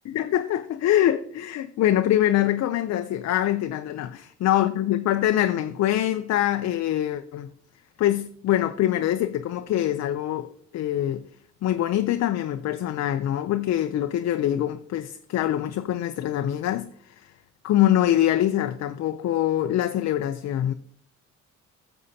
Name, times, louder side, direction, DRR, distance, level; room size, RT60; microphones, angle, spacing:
voice 1, 0.1-7.5 8.0-11.2 11.6-17.3 17.6-20.7, left 12 dB, 60° left, 0.5 m, -24 dB
11.0 x 7.0 x 2.7 m
cardioid pair, 90°, 30 cm